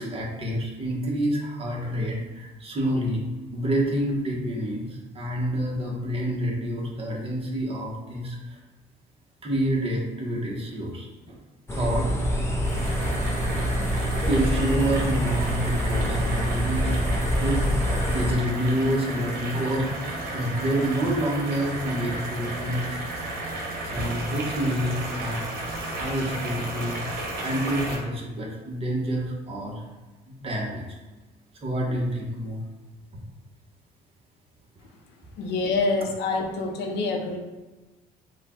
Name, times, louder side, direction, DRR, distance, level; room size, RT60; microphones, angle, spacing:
voice 1, 0.0-3.2 3.5-8.6 9.4-11.3 11.7-12.1 14.1-17.0 17.4-17.7 18.1-19.9 20.3-22.8 23.8-25.4 25.9-27.0 27.4-29.8 30.3-30.8 31.6-32.6, right 1 dB, 35° right, -2 dB, 1.2 m, -28 dB
sound 1, 11.7-18.3, equal, 15° left, 0.7 m, -25 dB
sound 2, 12.6-28.0, right 2 dB, 65° right, 1.2 m, -33 dB
voice 2, 35.4-37.4, left 3 dB, 80° left, 2 dB, 0.8 m, -26 dB
4.9 x 2.3 x 4.3 m, 1.2 s
cardioid pair, 110°, 17 cm